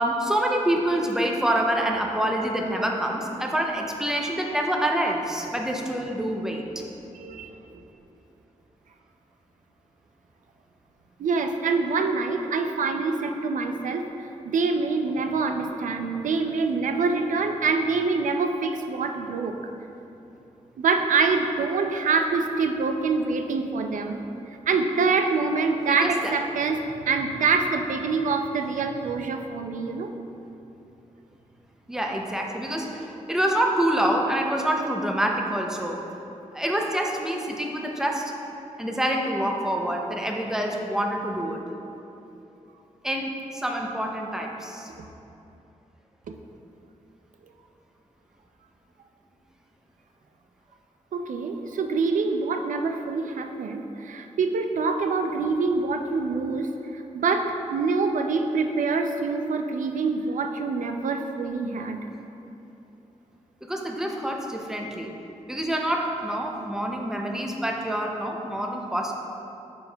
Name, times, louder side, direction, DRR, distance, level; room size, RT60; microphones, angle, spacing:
voice 1, 0.0-6.8 25.9-26.3 31.9-36.0 36.5-38.3 38.8-41.6 43.0-44.9 63.6-65.1 65.5-69.1, right 1 dB, 5° right, 0 dB, 0.5 m, -26 dB
voice 2, 7.2-7.5 11.2-14.3 14.5-19.6 20.8-30.1 51.1-62.0, right 4 dB, 85° right, 5 dB, 0.4 m, -25 dB
8.9 x 5.4 x 2.2 m, 2.9 s
wide cardioid pair, 170°, 13 cm